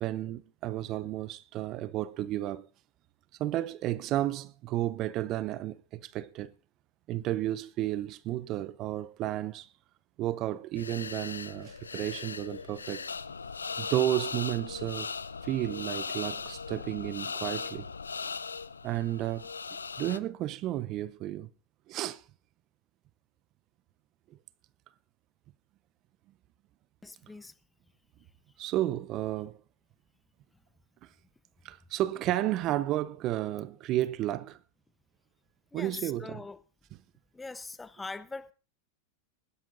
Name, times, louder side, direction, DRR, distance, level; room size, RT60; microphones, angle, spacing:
voice 1, 0.0-2.7 3.4-6.5 7.1-9.7 10.2-13.0 13.8-15.1 15.4-17.9 18.8-19.5 20.0-21.5 21.9-22.2 28.6-29.6 31.0-31.1 31.6-34.6 35.7-36.4, right 14 dB, 40° right, 0.7 m, -32 dB
sound 1, 10.8-20.2, left 5 dB, 85° left, 0.5 m, -38 dB
voice 2, 27.0-27.5 35.7-36.6 37.3-38.5, left 3 dB, 10° left, 0.9 m, -42 dB
21.5 x 12.0 x 2.6 m
hypercardioid pair, 95°, 0 cm